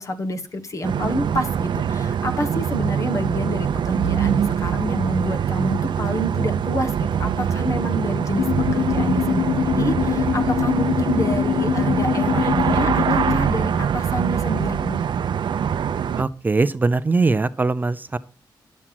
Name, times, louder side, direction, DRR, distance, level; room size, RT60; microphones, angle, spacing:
voice 1, 0.0-8.5 8.7-15.0, left 1 dB, 40° left, 8 dB, 1.2 m, -28 dB
sound 1, 0.8-16.2, right 8 dB, 75° right, 0.5 m, -23 dB
sound 2, 8.4-13.4, left 10 dB, 85° left, 0.5 m, -23 dB
voice 2, 16.2-18.2, right 3 dB, 25° right, 13 dB, 0.4 m, -21 dB
11.0 x 7.3 x 5.9 m, 0.41 s
wide cardioid pair, 165°, 8 cm